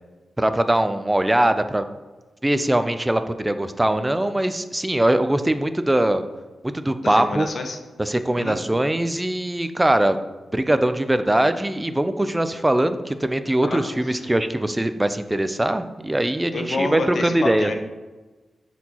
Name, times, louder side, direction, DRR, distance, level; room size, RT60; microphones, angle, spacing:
voice 1, 0.4-1.9 2.4-6.2 6.7-7.5 8.0-10.2 10.5-17.7, right 1 dB, 10° right, 10 dB, 0.3 m, -21 dB
voice 2, 7.0-7.8 8.4-8.6 13.6-13.8 14.1-14.2 16.5-17.7, left 3 dB, 50° left, 5 dB, 0.7 m, -28 dB
10.0 x 4.4 x 2.8 m, 1.2 s
wide cardioid pair, 175°, 0 cm